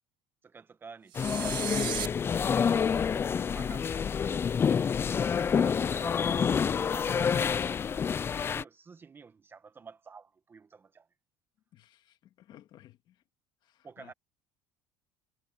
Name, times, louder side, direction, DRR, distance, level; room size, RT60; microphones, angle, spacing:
voice 1, 0.4-5.1 5.4-6.3 6.9-8.0 8.4-11.1 13.8-14.1, right 5 dB, 25° right, 1.5 m, -51 dB
sound 1, 1.1-2.1, right 16 dB, 55° right, 0.5 m, -35 dB
sound 2, 1.2-8.6, left 7 dB, 25° left, 0.4 m, -28 dB
voice 2, 11.7-13.2 13.6-14.1, left 13 dB, 55° left, 2.2 m, -57 dB
cardioid pair, 125°, 10 cm